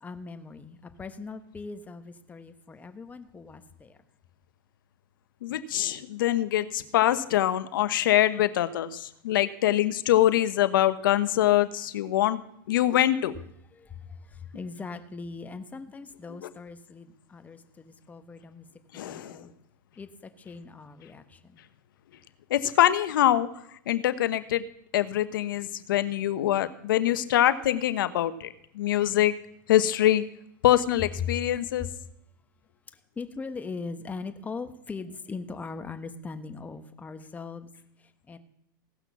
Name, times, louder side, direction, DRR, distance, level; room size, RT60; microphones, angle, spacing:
voice 1, 0.0-4.0 13.7-18.7 18.9-19.5 20.0-21.6 33.2-37.7 38.0-38.4, left 4 dB, 15° left, 9 dB, 1.1 m, -40 dB
voice 2, 5.4-12.4 12.7-13.3 16.4-16.5 18.9-19.4 22.5-23.5 23.9-24.7 24.9-29.3 29.7-30.2 30.6-31.9, left 13 dB, 80° left, 13 dB, 1.0 m, -24 dB
16.5 x 6.0 x 7.1 m, 0.72 s
hypercardioid pair, 125°, 11 cm